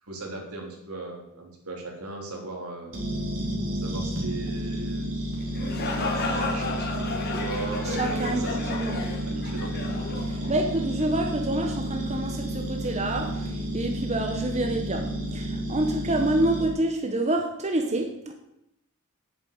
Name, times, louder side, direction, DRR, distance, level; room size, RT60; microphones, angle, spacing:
voice 1, 0.0-2.9 3.7-5.5 5.9-9.0 9.3-9.7, right 2 dB, 80° right, 3.4 m, -38 dB
sound 1, 2.9-16.7, right 1 dB, 65° right, 3.9 m, -31 dB
sound 2, 5.4-11.1, left 3 dB, 45° left, 1.8 m, -33 dB
voice 2, 7.8-9.0 10.2-18.3, right 1 dB, 30° right, 1.2 m, -28 dB
8.9 x 7.4 x 8.7 m
head